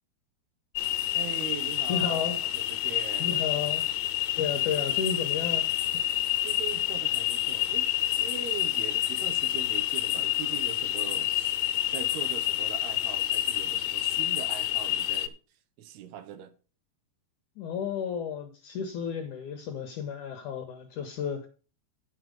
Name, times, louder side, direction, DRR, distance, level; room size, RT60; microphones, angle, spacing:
sound 1, 0.8-15.3, left 13 dB, 85° left, 2.7 m, -28 dB
voice 1, 1.1-3.4 6.4-15.4 15.8-16.5, right 9 dB, 75° right, 2.9 m, -41 dB
voice 2, 1.9-2.4 3.2-3.8 4.4-5.7 17.6-21.5, left 7 dB, 70° left, 2.0 m, -32 dB
9.8 x 6.6 x 5.1 m
omnidirectional pair, 4.7 m